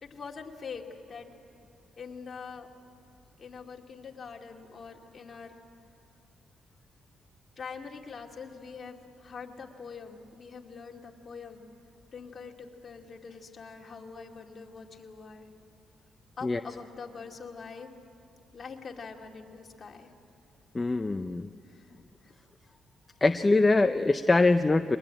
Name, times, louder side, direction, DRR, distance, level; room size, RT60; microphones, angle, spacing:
voice 1, 0.0-1.3 2.0-2.7 3.4-5.5 7.6-11.6 12.1-15.5 16.4-17.9 18.5-20.1 21.6-21.9 22.2-22.3, left 5 dB, 40° left, 1 dB, 2.4 m, -44 dB
voice 2, 20.7-21.5 23.2-25.0, left 3 dB, 20° left, 9 dB, 0.6 m, -23 dB
23.5 x 20.0 x 9.0 m, 2.6 s
cardioid pair, 90°, 0 cm